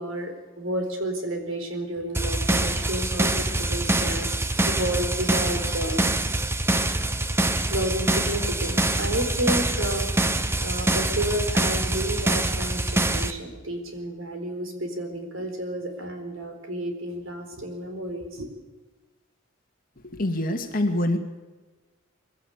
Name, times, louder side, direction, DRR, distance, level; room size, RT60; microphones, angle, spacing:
voice 1, 0.0-6.0 7.7-10.1 10.6-18.5, right 1 dB, 70° right, 5 dB, 4.2 m, -31 dB
sound 1, 2.1-13.3, right 2 dB, 10° right, 0.9 m, -25 dB
voice 2, 20.1-21.2, left 1 dB, 45° left, 4 dB, 2.4 m, -25 dB
22.5 x 16.5 x 8.3 m, 1.2 s
head